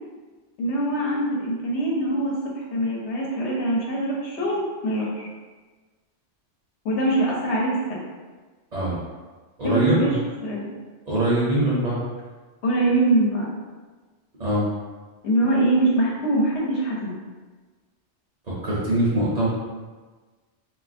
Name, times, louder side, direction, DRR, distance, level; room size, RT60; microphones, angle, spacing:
voice 1, 0.6-5.3 6.8-8.0 9.6-10.2 10.4-10.7 12.6-13.5 15.2-17.2, right 1 dB, 75° left, -3 dB, 0.9 m, -23 dB
voice 2, 9.6-10.1 11.1-12.0 14.4-14.7 18.5-19.5, right 1 dB, 45° right, -7 dB, 0.6 m, -22 dB
3.3 x 2.4 x 2.5 m, 1.4 s
omnidirectional pair, 1.2 m